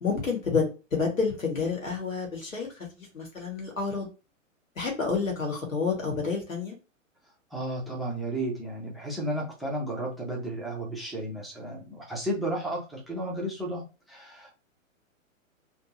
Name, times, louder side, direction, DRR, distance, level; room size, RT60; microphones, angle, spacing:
voice 1, 0.0-4.1 4.8-6.8, left 4 dB, 70° left, 0 dB, 1.8 m, -29 dB
voice 2, 7.5-14.5, right 1 dB, ahead, -2 dB, 0.6 m, -33 dB
3.2 x 2.9 x 2.9 m, 0.31 s
figure-of-eight pair, 110°, 40 cm